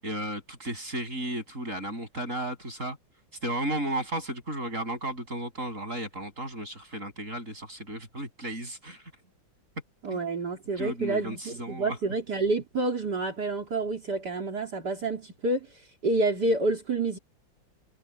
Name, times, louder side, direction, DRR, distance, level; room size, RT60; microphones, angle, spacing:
voice 1, 0.0-3.0 3.4-9.0 10.1-10.2 10.8-12.0, right 1 dB, 40° right, 8.3 m, -34 dB
voice 2, 10.0-15.7 16.0-17.2, right 2 dB, 55° right, 3.6 m, -28 dB
omnidirectional pair, 2.1 m